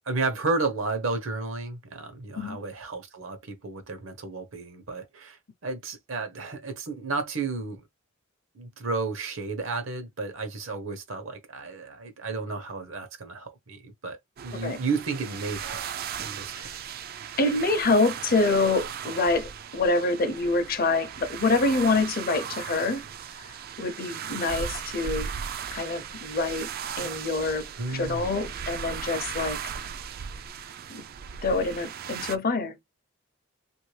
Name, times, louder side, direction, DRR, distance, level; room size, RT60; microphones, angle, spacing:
voice 1, 0.1-7.8 8.5-15.9 16.2-16.5 16.8-17.0 27.8-28.3, right 3 dB, 70° right, 0.9 m, -32 dB
sound 1, 14.4-32.4, right 8 dB, 45° right, 0.3 m, -37 dB
voice 2, 17.4-23.1 23.4-25.3 25.7-26.7 27.0-29.9 30.9-31.0 31.4-32.8, left 3 dB, 45° left, 0.6 m, -26 dB
2.9 x 2.5 x 3.2 m
head